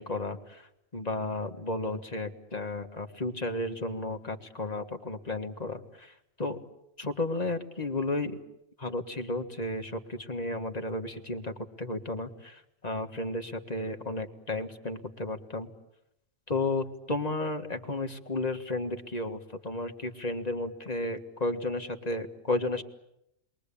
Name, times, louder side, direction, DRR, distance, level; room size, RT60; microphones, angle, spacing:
voice 1, 0.0-6.6 7.0-8.4 8.8-11.5 11.8-15.7 16.5-22.8, left 2 dB, 30° left, 5 dB, 1.8 m, -33 dB
29.5 x 22.5 x 8.5 m, 0.84 s
omnidirectional pair, 1.3 m